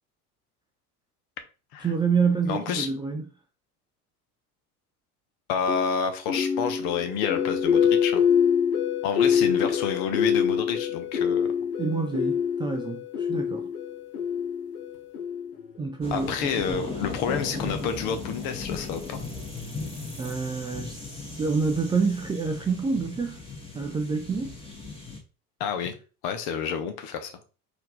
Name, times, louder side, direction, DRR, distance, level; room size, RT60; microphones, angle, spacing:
voice 1, 1.8-3.2 11.8-13.7 15.8-16.4 16.7-17.0 20.2-23.4 23.7-24.5, right 5 dB, 10° right, 0.3 m, -27 dB
voice 2, 2.5-2.9 5.5-8.2 9.0-11.7 16.1-19.2 25.6-26.0 26.2-27.3, left 7 dB, 50° left, 1.0 m, -29 dB
sound 1, 5.7-15.8, left 7 dB, 75° left, 0.9 m, -25 dB
sound 2, 16.0-25.2, left 3 dB, 10° left, 1.6 m, -37 dB
4.3 x 2.7 x 3.9 m
figure-of-eight pair, 65°, 45 cm